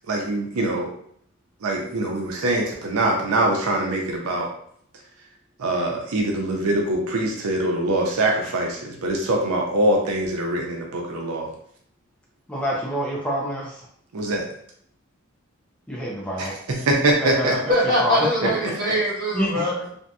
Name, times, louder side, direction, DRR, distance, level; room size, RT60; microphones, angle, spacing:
voice 1, 0.1-0.9 1.6-4.5 5.6-11.5 14.1-14.5 16.4-17.5 18.4-18.7, right 1 dB, 90° right, 0 dB, 0.6 m, -23 dB
voice 2, 12.5-13.9 15.9-16.5 17.2-18.8 19.3-19.7, equal, 5° left, -5 dB, 0.4 m, -27 dB
voice 3, 17.7-19.9, equal, 45° right, -6 dB, 1.2 m, -22 dB
2.7 x 2.5 x 2.3 m, 0.64 s
head